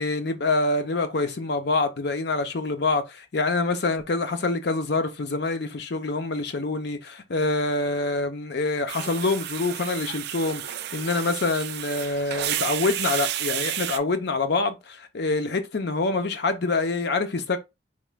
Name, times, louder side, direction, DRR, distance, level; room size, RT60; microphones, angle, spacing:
voice 1, 0.0-17.6, left 3 dB, 60° left, 0.6 m, -26 dB
sound 1, 8.9-14.0, right 11 dB, 60° right, 0.4 m, -31 dB
4.4 x 3.0 x 2.2 m
head